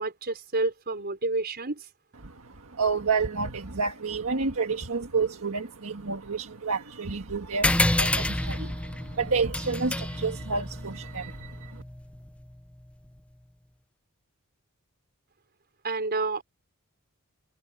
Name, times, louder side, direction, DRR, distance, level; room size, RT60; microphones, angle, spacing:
voice 1, 0.0-1.9 15.8-16.4, right 2 dB, 45° right, 5.5 m, -29 dB
voice 2, 2.2-11.8, right 4 dB, 70° right, 1.7 m, -30 dB
sound 1, 7.6-12.6, left 1 dB, 5° left, 0.5 m, -29 dB
head